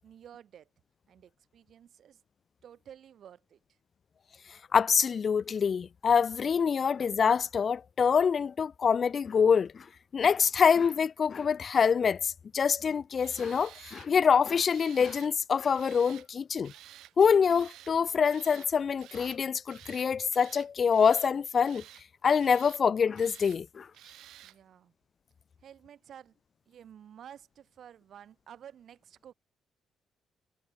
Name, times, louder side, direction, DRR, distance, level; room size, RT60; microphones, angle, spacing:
voice 1, 0.0-0.7 1.1-2.2 2.6-3.8 24.4-24.9 25.6-26.4 26.7-29.3, right 9 dB, 65° right, 7.8 m, -52 dB
voice 2, 4.7-9.9 10.1-16.7 17.2-21.8 22.2-23.9, left 6 dB, 45° left, 0.7 m, -25 dB
Tools, 13.2-14.1 14.7-15.3 15.7-16.3 16.6-17.1 17.5-17.9 18.3-18.7 19.0-19.4 19.7-20.1 20.3-21.3 21.6-22.0 22.4-22.8 23.2-23.6 23.9-24.6, right 14 dB, 85° right, 3.4 m, -52 dB
cardioid pair, 90°, 0 cm